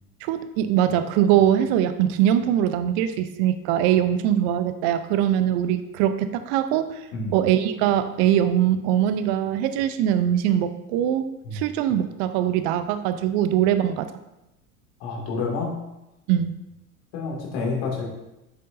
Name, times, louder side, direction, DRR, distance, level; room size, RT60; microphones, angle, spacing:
voice 1, 0.2-7.0 7.3-11.3 11.5-14.1 16.3-16.5, right 10 dB, 40° right, 11 dB, 0.6 m, -22 dB
voice 2, 15.0-15.8 17.1-18.1, left 4 dB, 55° left, -1 dB, 2.3 m, -28 dB
8.1 x 6.9 x 2.6 m, 0.92 s
figure-of-eight pair, 80°, 44 cm